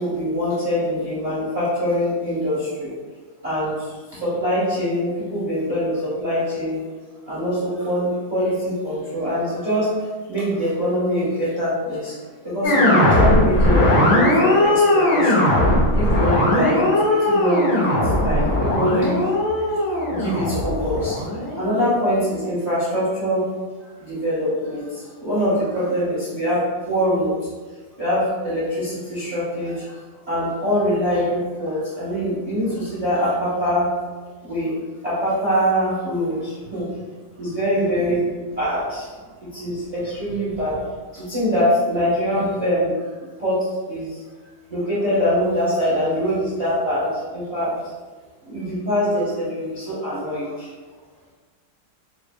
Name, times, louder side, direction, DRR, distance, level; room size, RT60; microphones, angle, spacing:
voice 1, 0.0-2.9 3.4-6.8 7.3-9.9 10.3-15.5 15.9-19.1 19.6-19.7 20.1-21.2 21.5-23.4 24.0-26.6 26.9-27.3 28.0-30.0 30.3-33.9 34.4-34.8 35.0-36.9 37.4-39.1 39.4-40.8 41.1-42.9 43.4-44.2 44.7-47.7 48.4-50.7, equal, 30° right, -10 dB, 0.9 m, -23 dB
sound 1, 12.6-21.9, left 1 dB, 60° left, 1.6 m, -18 dB
5.2 x 2.3 x 2.3 m, 1.4 s
omnidirectional pair, 2.3 m